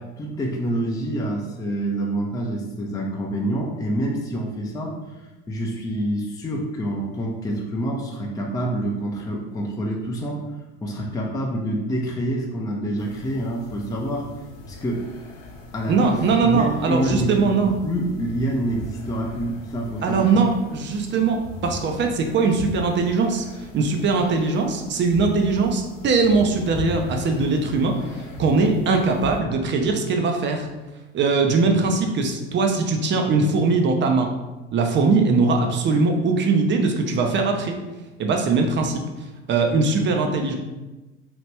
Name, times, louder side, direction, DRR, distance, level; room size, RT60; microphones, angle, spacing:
voice 1, 0.2-4.9 5.5-10.4 10.8-14.2 14.7-15.0 15.7-16.1 16.4-17.5 17.8-20.4, right 1 dB, 10° left, -1 dB, 0.5 m, -27 dB
sound 1, 13.0-29.4, left 1 dB, 55° left, 0.8 m, -39 dB
voice 2, 15.9-17.7 20.0-28.1 28.4-30.7 31.1-34.3 34.7-37.8 38.2-39.0 39.5-40.6, right 4 dB, 35° right, 3 dB, 0.5 m, -21 dB
2.9 x 2.5 x 3.2 m, 1.1 s
hypercardioid pair, 80°, 33 cm